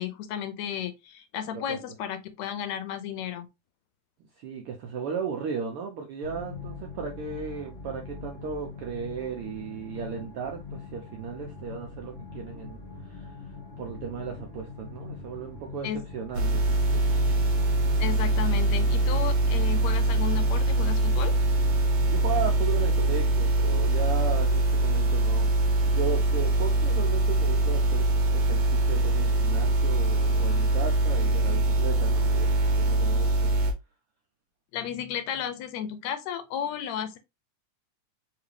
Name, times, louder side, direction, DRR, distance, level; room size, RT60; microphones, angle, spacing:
voice 1, 0.0-3.5 15.8-16.0 18.0-21.3 34.7-37.2, left 9 dB, 80° left, 1.8 m, -33 dB
voice 2, 4.4-12.8 13.1-13.3 13.8-17.1 21.8-25.5 25.9-32.5 32.9-33.3, right 6 dB, 75° right, 1.3 m, -35 dB
sound 1, 6.2-23.5, left 4 dB, 45° left, 0.8 m, -42 dB
sound 2, 16.3-33.7, right 2 dB, 55° right, 1.7 m, -23 dB
4.8 x 2.7 x 3.2 m
omnidirectional pair, 3.3 m